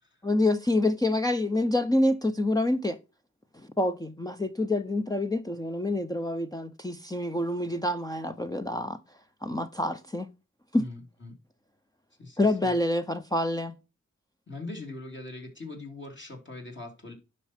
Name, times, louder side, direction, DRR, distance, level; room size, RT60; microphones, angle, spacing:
voice 1, 0.2-3.0 3.8-9.0 9.4-10.3 10.7-10.8 12.4-13.8, left 1 dB, 10° left, 0.8 m, -27 dB
voice 2, 10.7-11.3 12.2-12.7 14.5-17.1, left 2 dB, 35° left, 3.2 m, -41 dB
10.0 x 5.9 x 4.4 m
supercardioid pair, 45°, 31 cm